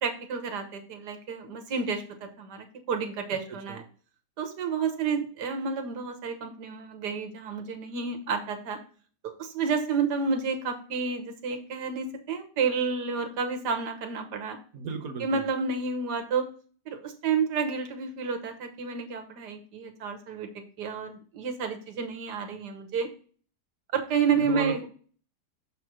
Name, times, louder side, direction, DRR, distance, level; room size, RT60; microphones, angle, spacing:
voice 1, 0.0-3.8 4.4-8.8 9.4-14.6 15.2-16.4 16.9-20.5 20.8-23.1 23.9-24.8, right 5 dB, 85° right, 5 dB, 1.7 m, -30 dB
voice 2, 14.7-15.5 24.4-24.9, right 5 dB, 65° right, 5 dB, 1.2 m, -35 dB
6.9 x 3.2 x 5.9 m, 0.42 s
omnidirectional pair, 1.7 m